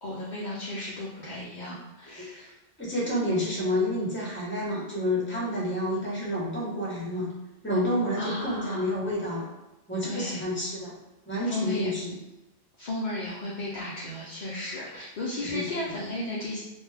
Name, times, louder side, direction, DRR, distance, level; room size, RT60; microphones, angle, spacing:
voice 1, 0.0-2.5 8.2-8.9 10.0-10.4 11.5-11.9 12.8-16.6, left 2 dB, 55° left, -7 dB, 0.6 m, -34 dB
voice 2, 2.8-7.3 7.6-9.5 9.9-10.9 11.3-12.1 15.5-15.7, equal, 10° left, -6 dB, 0.8 m, -29 dB
2.5 x 2.2 x 3.3 m, 1.0 s
omnidirectional pair, 1.1 m